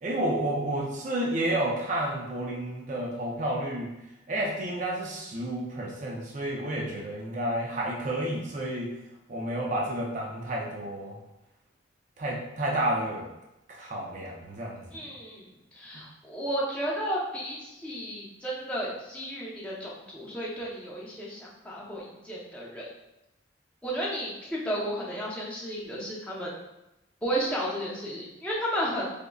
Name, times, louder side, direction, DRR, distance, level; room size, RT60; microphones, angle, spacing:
voice 1, 0.0-3.9 4.3-8.9 9.3-11.2 12.2-13.2 13.7-15.1, right 1 dB, 40° right, -2 dB, 0.5 m, -30 dB
voice 2, 14.9-15.4 15.7-22.9 23.8-26.5 27.2-29.0, equal, 5° left, -6 dB, 0.6 m, -33 dB
5.0 x 2.1 x 2.3 m, 0.94 s
head